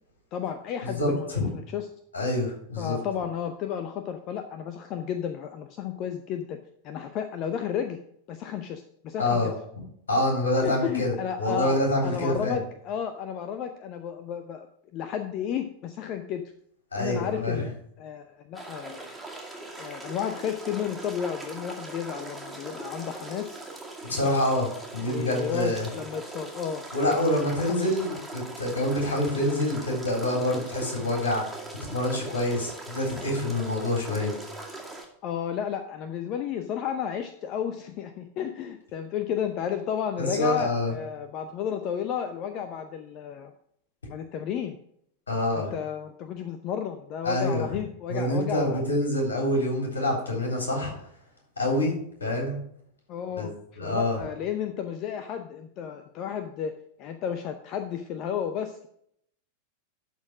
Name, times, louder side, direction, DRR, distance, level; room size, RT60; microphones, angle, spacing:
voice 1, 0.3-1.9 2.8-6.6 6.8-8.0 8.3-9.5 10.6-14.7 14.9-16.4 16.9-17.7 18.0-19.1 19.8-23.6 25.1-26.8 27.1-28.2 35.2-43.5 44.1-44.8 45.5-48.8 53.1-53.5 53.8-58.9, left 8 dB, 40° left, 8 dB, 0.7 m, -32 dB
voice 2, 0.8-1.5 2.1-3.0 9.2-9.5 10.1-12.6 16.9-17.6 24.0-25.9 26.9-34.3 40.2-40.9 45.3-45.7 47.2-47.7 48.1-50.9 51.6-52.6 53.4-53.5 53.8-54.2, left 1 dB, 70° left, 0 dB, 3.7 m, -26 dB
sound 1, 18.5-35.0, right 2 dB, ahead, 2.3 m, -41 dB
12.0 x 4.3 x 6.1 m, 0.70 s
figure-of-eight pair, 90°, 0 cm